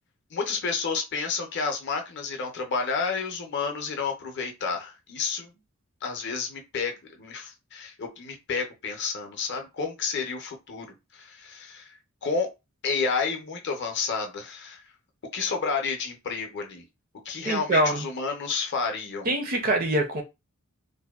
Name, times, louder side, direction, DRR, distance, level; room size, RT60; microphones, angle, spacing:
voice 1, 0.3-5.5 6.0-10.9 11.1-12.5 12.8-14.8 15.3-16.8 17.2-19.3, left 5 dB, 50° left, 0.5 m, -30 dB
voice 2, 17.4-18.0 19.3-20.2, right 1 dB, 40° right, 0.4 m, -24 dB
2.6 x 2.1 x 2.3 m
head